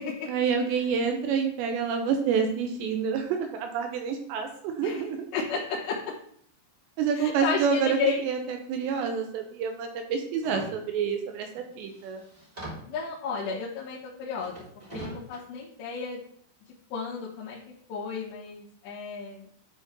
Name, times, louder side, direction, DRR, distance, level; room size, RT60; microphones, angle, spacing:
voice 1, 0.3-5.3 7.0-8.0 8.2-12.2, right 6 dB, 80° right, 4 dB, 2.7 m, -28 dB
voice 2, 5.3-6.0 7.1-8.2 12.8-14.6 14.9-16.2 16.9-17.6 17.9-19.5, left 5 dB, 70° left, -8 dB, 3.4 m, -32 dB
sound 1, 10.4-10.7 11.5-11.6 11.9-13.0 14.3-15.4, right 1 dB, 10° right, 2.5 m, -41 dB
12.0 x 4.1 x 3.7 m, 0.64 s
omnidirectional pair, 5.6 m